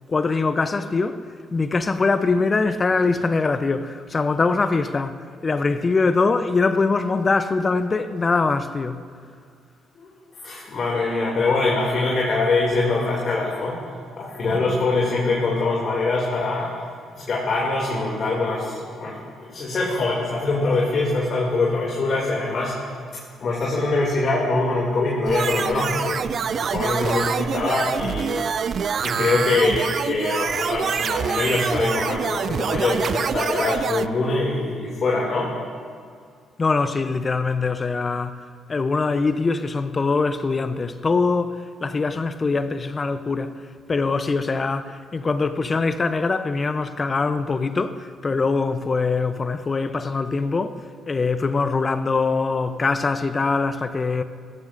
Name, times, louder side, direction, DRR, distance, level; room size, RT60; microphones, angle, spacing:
voice 1, 0.1-1.2 1.5-9.0 36.6-54.2, left 4 dB, 35° left, 0.6 m, -23 dB
voice 2, 10.4-13.8 14.2-16.7 17.2-22.8 23.4-26.2 26.5-28.4 29.0-35.5, left 3 dB, 55° left, 2.4 m, -23 dB
sound 1, 25.3-34.1, right 7 dB, 55° right, 0.3 m, -26 dB
16.0 x 13.0 x 2.6 m
hypercardioid pair, 50°, 0 cm